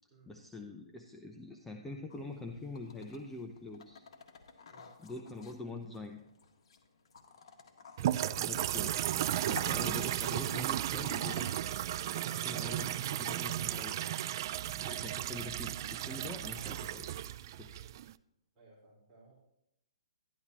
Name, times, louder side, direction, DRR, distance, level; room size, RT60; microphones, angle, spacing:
voice 1, 0.3-4.0 5.0-6.2 8.4-8.9 9.4-11.7 12.1-13.9 14.7-17.1 17.6-17.8, left 2 dB, 5° left, 3 dB, 0.6 m, -44 dB
sound 1, 2.1-13.8, left 5 dB, 65° left, 1.6 m, -55 dB
voice 2, 8.0-8.8 12.4-12.6 18.5-19.3, right 2 dB, 20° right, -5 dB, 4.4 m, -57 dB
sound 2, 8.0-18.1, right 12 dB, 45° right, 0.3 m, -34 dB
Insect, 10.0-15.1, right 8 dB, 65° right, 0.7 m, -57 dB
12.0 x 11.5 x 2.9 m, 0.83 s
hypercardioid pair, 155°, 3 cm